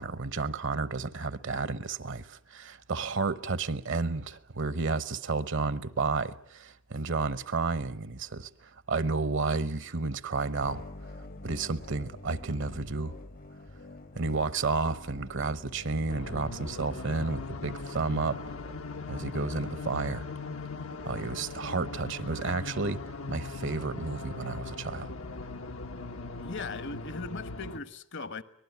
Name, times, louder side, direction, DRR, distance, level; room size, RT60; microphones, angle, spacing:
voice 1, 0.0-10.8 11.4-13.2 14.1-18.4 19.1-20.3 21.0-23.0 23.3-25.1, right 3 dB, 65° right, 1.0 m, -31 dB
sound 1, 10.6-18.8, left 2 dB, 45° left, 0.9 m, -47 dB
sound 2, 16.1-27.8, left 3 dB, 90° left, 1.4 m, -39 dB
voice 2, 26.3-28.4, left 3 dB, 60° left, 1.3 m, -39 dB
24.5 x 19.5 x 9.4 m
head